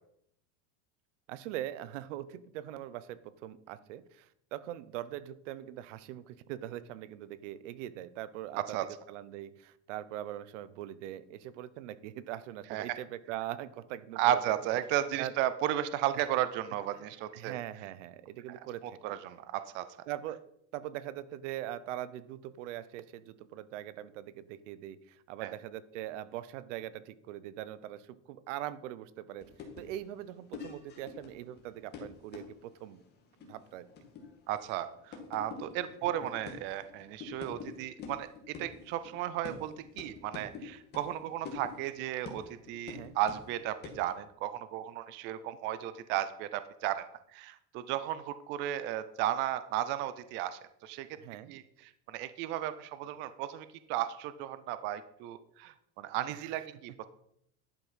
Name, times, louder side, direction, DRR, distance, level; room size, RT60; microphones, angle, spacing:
voice 1, 1.3-8.8 9.1-14.4 15.2-15.3 16.1-16.2 16.9-17.0 17.3-19.0 20.1-20.4 20.7-29.5 29.8-33.0 33.4-33.9 42.9-43.2 51.2-51.5 56.3-56.6, right 13 dB, 85° right, 16 dB, 0.9 m, -42 dB
voice 2, 14.2-17.6 18.8-19.9 25.4-25.5 34.5-47.1 47.3-51.1 51.5-57.1, right 12 dB, 30° right, 13 dB, 0.5 m, -34 dB
sound 1, 29.4-37.7 38.0-43.6 43.8-44.1, left 5 dB, 30° left, 1.9 m, -47 dB
11.0 x 5.9 x 5.6 m, 0.72 s
cardioid pair, 175°, 36 cm